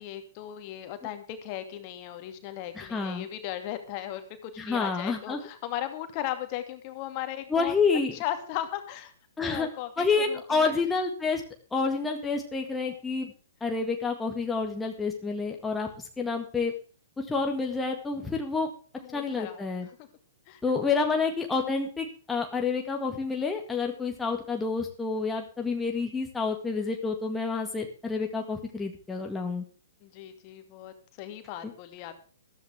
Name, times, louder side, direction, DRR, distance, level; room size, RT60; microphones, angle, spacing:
voice 1, 0.0-7.7 8.1-9.1 9.4-10.8 19.0-20.1 20.5-20.6 21.0-21.1 30.0-32.2, left 12 dB, 35° left, 7 dB, 2.4 m, -37 dB
voice 2, 2.8-3.3 4.6-5.4 7.5-8.1 9.4-9.7 10.0-11.4 11.7-13.3 13.6-15.9 16.2-16.7 17.2-18.7 19.1-19.9 20.6-29.6, left 4 dB, 10° left, 2 dB, 2.0 m, -28 dB
14.5 x 14.0 x 3.6 m, 0.38 s
figure-of-eight pair, 115°, 0 cm